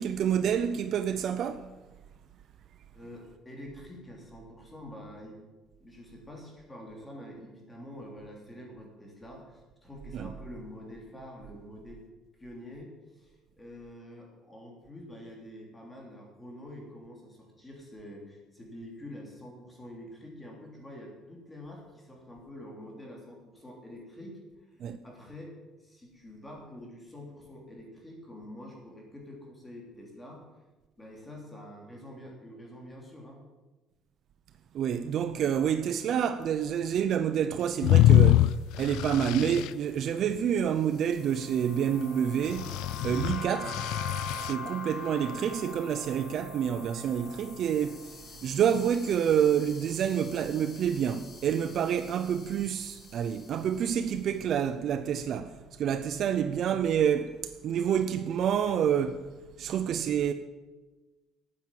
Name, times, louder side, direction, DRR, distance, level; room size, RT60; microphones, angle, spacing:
voice 1, 0.0-1.7 10.1-10.3 24.8-25.0 34.7-38.4 38.8-42.8 43.0-43.8 44.4-57.4 57.6-59.2 59.6-60.3, right 8 dB, 45° right, 0.5 m, -28 dB
voice 2, 2.9-5.5 5.8-12.0 12.4-24.4 24.7-24.8 25.0-25.5 25.8-30.4 31.0-33.4, left 1 dB, 10° left, 3.1 m, -46 dB
sound 1, 37.8-39.7 42.5-44.5, left 13 dB, 75° left, 0.4 m, -23 dB
sound 2, 40.8-54.2, left 3 dB, 45° left, 2.4 m, -44 dB
12.5 x 9.1 x 7.5 m
cardioid pair, 170°, 0 cm